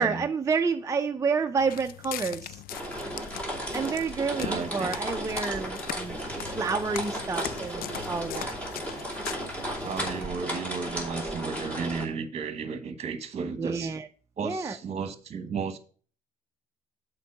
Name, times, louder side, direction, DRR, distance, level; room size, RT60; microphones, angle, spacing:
voice 1, 0.0-2.6 3.7-6.2 6.5-8.6 13.6-14.1 14.4-14.8, right 5 dB, 20° right, 0.5 m, -29 dB
Walk footsteps, 1.6-10.3, left 13 dB, 65° left, 0.4 m, -41 dB
sound 1, 2.7-12.1, equal, 10° left, 2.7 m, -34 dB
voice 2, 4.4-5.0 9.8-13.9 14.4-15.8, right 5 dB, 40° right, 1.2 m, -34 dB
7.3 x 4.5 x 5.9 m
cardioid pair, 110°, 17 cm